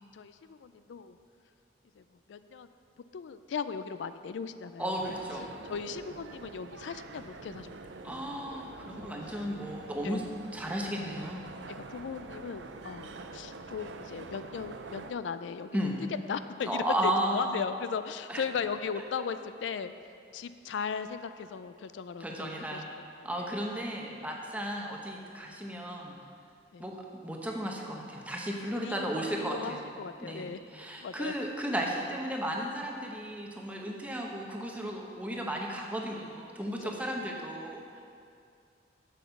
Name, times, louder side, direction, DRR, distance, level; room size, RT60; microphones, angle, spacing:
voice 1, 0.1-1.2 2.0-2.7 3.1-5.1 5.4-7.7 8.0-8.2 8.9-9.5 10.0-10.3 11.7-15.8 16.3-19.9 20.3-22.8 23.2-23.5 26.7-26.9 28.7-29.1 29.4-30.6 31.0-31.3 36.8-37.3, left 6 dB, 85° left, 11 dB, 0.4 m, -38 dB
voice 2, 4.8-5.4 8.0-10.2 10.5-11.4 15.7-16.0 16.6-17.5 18.3-18.4 22.2-22.8 23.2-26.2 26.8-29.9 30.2-38.0, right 1 dB, 10° right, -1 dB, 0.9 m, -34 dB
sound 1, 4.9-15.1, right 3 dB, 90° right, 0.5 m, -46 dB
7.7 x 7.3 x 5.8 m, 2.4 s
head